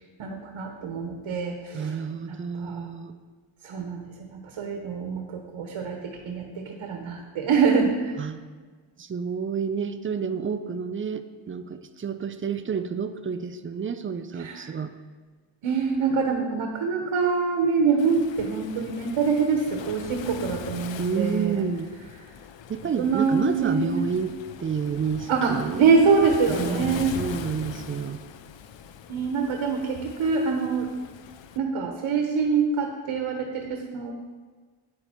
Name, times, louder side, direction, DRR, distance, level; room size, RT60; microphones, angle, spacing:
voice 1, 0.2-2.0 2.3-2.9 3.6-8.2 14.4-14.7 15.6-21.7 23.0-24.1 25.3-27.2 29.1-30.9 31.5-34.1, right 5 dB, 80° right, 3 dB, 1.2 m, -25 dB
voice 2, 1.7-3.1 8.2-8.4 9.0-14.9 21.0-21.9 22.7-24.3 24.6-25.8 26.5-28.2, right 6 dB, 30° right, 10 dB, 0.4 m, -29 dB
Waves surf, 18.0-31.6, left 8 dB, 70° left, 0.7 m, -41 dB
9.7 x 8.9 x 4.4 m, 1.4 s
wide cardioid pair, 180°, 47 cm